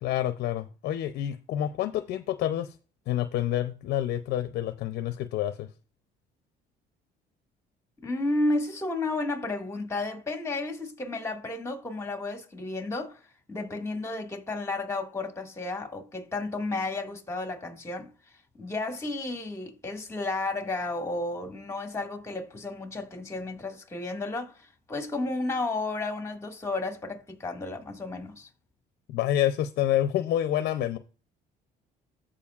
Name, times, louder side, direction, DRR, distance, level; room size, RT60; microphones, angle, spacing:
voice 1, 0.0-2.7 3.1-5.7 29.1-31.0, left 12 dB, 70° left, 0.6 m, -28 dB
voice 2, 8.0-13.2 13.5-18.1 18.6-28.5, left 2 dB, 15° left, 1.8 m, -32 dB
14.0 x 5.0 x 2.4 m
cardioid pair, 110°, 17 cm